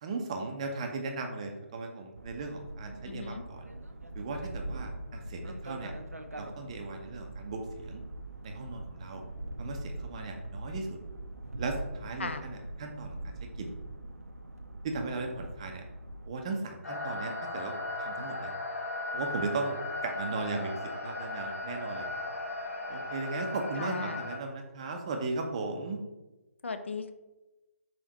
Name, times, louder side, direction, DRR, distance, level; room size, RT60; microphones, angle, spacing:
voice 1, 0.0-3.7 4.2-5.9 6.3-8.0 8.4-9.2 9.6-11.0 11.6-13.2 13.6-13.8 14.8-15.8 16.3-17.7 18.0-18.5 19.1-19.8 20.0-22.1 22.9-26.0, right 3 dB, 25° right, 4 dB, 0.4 m, -37 dB
sound 1, 2.2-16.3, right 1 dB, 85° right, 0.4 m, -42 dB
voice 2, 3.0-3.4 12.2-12.4 23.8-24.2 26.6-27.1, left 4 dB, 55° left, 8 dB, 0.4 m, -37 dB
sound 2, 16.8-24.4, left 2 dB, 70° left, 1.2 m, -37 dB
4.1 x 3.7 x 2.8 m, 1.1 s
figure-of-eight pair, 145°, 8 cm